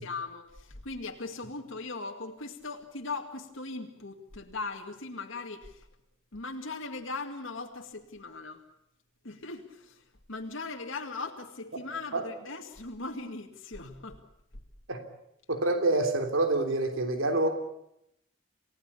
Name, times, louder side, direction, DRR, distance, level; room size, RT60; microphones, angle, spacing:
voice 1, 0.0-5.9 6.3-8.6 9.2-14.2, left 3 dB, 65° left, 2 dB, 2.2 m, -39 dB
voice 2, 15.5-17.5, right 2 dB, 70° right, 6 dB, 3.4 m, -26 dB
28.5 x 18.0 x 8.5 m, 0.81 s
head